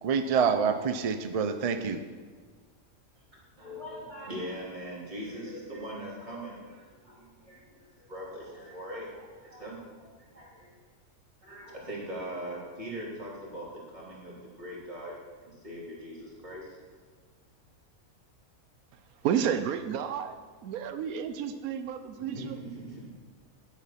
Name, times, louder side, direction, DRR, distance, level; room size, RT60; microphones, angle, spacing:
voice 1, 0.0-2.0, right 6 dB, 60° right, 9 dB, 0.3 m, -27 dB
voice 2, 3.6-10.7 11.4-15.2 15.4-16.8 22.2-23.1, equal, 30° right, -6 dB, 3.4 m, -41 dB
voice 3, 18.9-20.4 20.6-22.6, right 8 dB, 90° right, 9 dB, 1.1 m, -31 dB
11.5 x 8.2 x 5.8 m, 1.5 s
omnidirectional pair, 1.5 m